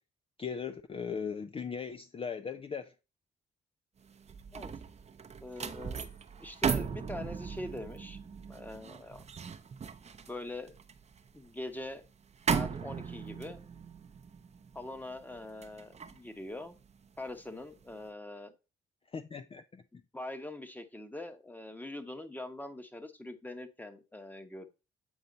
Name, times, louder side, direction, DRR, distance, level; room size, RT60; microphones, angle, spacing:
voice 1, 0.4-2.9 19.1-19.8, left 6 dB, 30° left, 0.4 m, -38 dB
sound 1, 4.1-17.4 17.8-18.0, right 6 dB, 35° right, 0.7 m, -38 dB
voice 2, 5.4-6.0 6.3-8.2 8.5-9.2 10.3-10.8 11.3-12.1 12.5-13.6 14.7-16.8 17.2-18.5 20.1-24.7, left 1 dB, 10° left, 1.1 m, -43 dB
8.1 x 4.2 x 3.9 m
cardioid pair, 90°, 20 cm